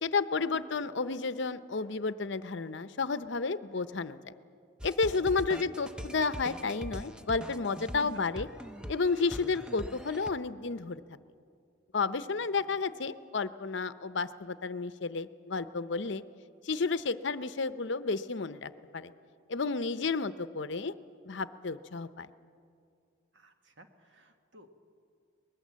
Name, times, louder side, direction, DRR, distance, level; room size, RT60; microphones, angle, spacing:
voice 1, 0.0-4.3 4.8-8.5 8.9-11.0 11.9-16.2 16.6-19.1 19.5-20.9 21.2-22.3, left 4 dB, 60° left, 13 dB, 0.7 m, -32 dB
sound 1, 4.8-10.3, equal, 5° right, 0.6 m, -42 dB
voice 2, 12.4-12.8 23.3-24.8, right 1 dB, 65° right, 6 dB, 1.7 m, -58 dB
23.5 x 20.0 x 7.5 m, 2.4 s
head